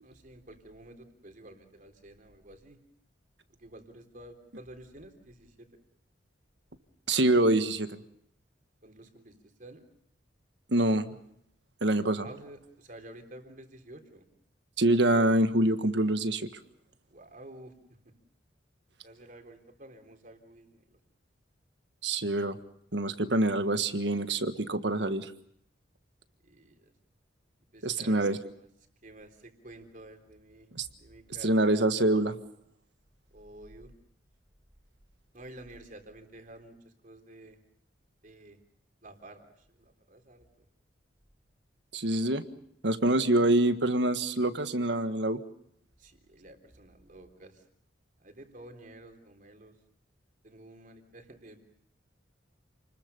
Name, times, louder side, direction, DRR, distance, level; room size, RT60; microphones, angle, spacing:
voice 1, 0.0-2.8 3.6-5.7 8.8-9.8 12.2-14.2 17.1-17.7 19.0-21.0 26.4-26.9 27.7-28.7 29.0-30.7 31.0-31.9 33.3-33.9 35.3-37.6 38.2-38.6 39.0-40.4 46.0-47.7 48.2-49.8 50.4-51.6, right 1 dB, 45° right, 5 dB, 3.7 m, -51 dB
voice 2, 7.1-7.9 10.7-11.2 11.8-12.3 14.8-16.5 22.0-22.6 22.9-25.3 27.8-28.4 30.7-30.8 31.4-32.4 41.9-42.4 42.8-45.4, right 1 dB, 65° right, 10 dB, 1.6 m, -25 dB
29.0 x 21.0 x 6.9 m, 0.71 s
head